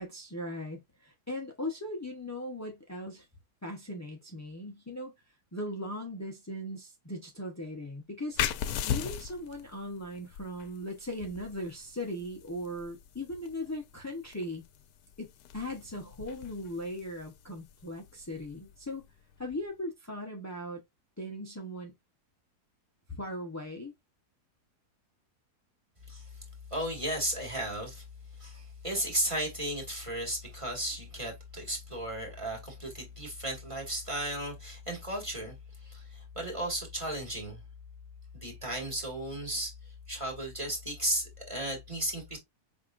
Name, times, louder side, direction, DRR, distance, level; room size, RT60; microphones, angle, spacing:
voice 1, 0.0-3.3 3.6-5.1 5.5-8.5 8.9-14.6 15.2-19.0 19.4-20.8 21.2-21.9 23.1-23.9, left 1 dB, 25° left, 0.4 m, -39 dB
sound 1, 8.4-19.6, left 10 dB, 75° left, 1.1 m, -39 dB
voice 2, 26.7-28.0 28.4-35.6 35.8-37.6 38.3-39.7 40.1-42.4, right 1 dB, 20° right, 2.1 m, -35 dB
5.3 x 3.6 x 2.4 m
omnidirectional pair, 1.7 m